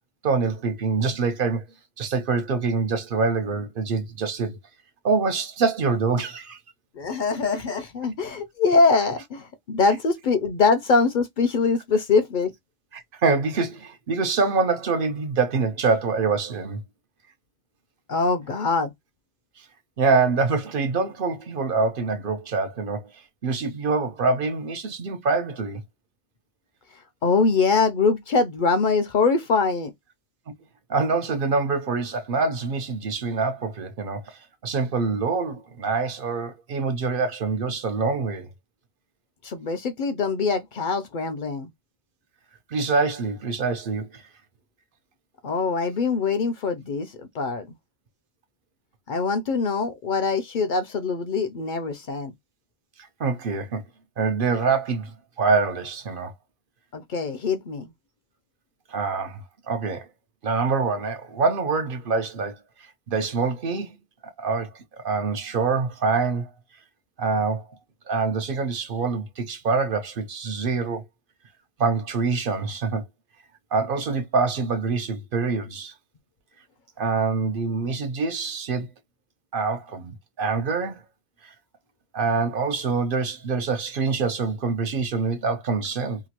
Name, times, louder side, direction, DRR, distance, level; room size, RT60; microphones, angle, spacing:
voice 1, 0.2-1.6 2.0-4.6 5.0-6.6 12.9-16.8 19.6-19.7 20.0-23.1 23.4-25.8 30.9-38.5 42.7-44.2 53.2-53.8 54.2-56.3 58.9-59.4 59.7-60.1 60.4-62.6 63.1-64.0 64.2-64.7 65.0-66.5 67.2-67.6 68.1-71.0 71.8-73.0 73.7-75.9 77.0-78.9 79.5-81.0 81.4-81.5 82.1-86.2, right 4 dB, 60° right, 0.7 m, -25 dB
voice 2, 6.9-12.5 18.1-18.9 27.2-29.9 39.4-41.7 45.4-47.7 49.1-52.3 56.9-57.9, left 4 dB, 60° left, 0.6 m, -23 dB
2.9 x 2.3 x 2.8 m
omnidirectional pair, 1.1 m